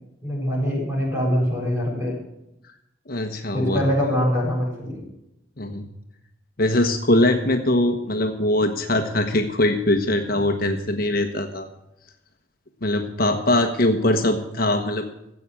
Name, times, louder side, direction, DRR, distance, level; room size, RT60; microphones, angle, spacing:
voice 1, 0.2-2.2 3.5-5.0, equal, 15° right, -3 dB, 7.5 m, -23 dB
voice 2, 3.1-3.8 5.6-5.8 6.6-11.7 12.8-15.1, left 1 dB, 50° left, 5 dB, 1.2 m, -22 dB
14.5 x 8.5 x 8.9 m, 0.86 s
head